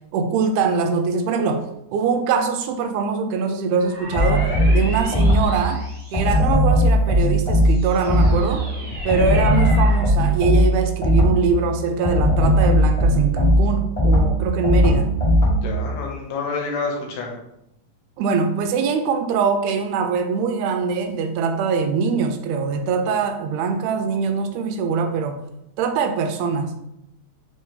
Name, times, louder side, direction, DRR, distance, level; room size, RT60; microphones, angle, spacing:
voice 1, 0.1-5.8 6.1-8.7 9.1-15.2 18.2-25.5 25.8-26.7, right 5 dB, 90° right, 7 dB, 2.0 m, -23 dB
sound 1, 3.8-6.7 7.3-10.1, equal, 50° right, 0.9 m, -34 dB
sound 2, 4.1-5.7 6.1-8.6 9.1-11.6 12.0-15.8, equal, 55° left, 0.4 m, -18 dB
voice 2, 15.6-17.4, left 4 dB, 75° left, 0 dB, 1.8 m, -28 dB
4.7 x 2.7 x 3.6 m, 0.83 s
omnidirectional pair, 3.5 m